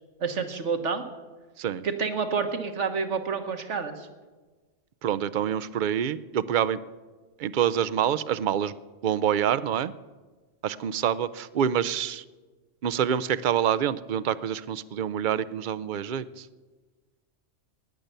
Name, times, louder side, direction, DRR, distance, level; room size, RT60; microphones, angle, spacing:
voice 1, 0.2-1.0 1.8-4.1, right 5 dB, 75° right, 7 dB, 1.6 m, -29 dB
voice 2, 5.0-6.8 7.4-8.7 9.0-9.9 10.6-12.2 12.8-16.4, right 9 dB, 55° right, 15 dB, 0.6 m, -26 dB
17.0 x 10.5 x 6.8 m, 1.3 s
omnidirectional pair, 1.2 m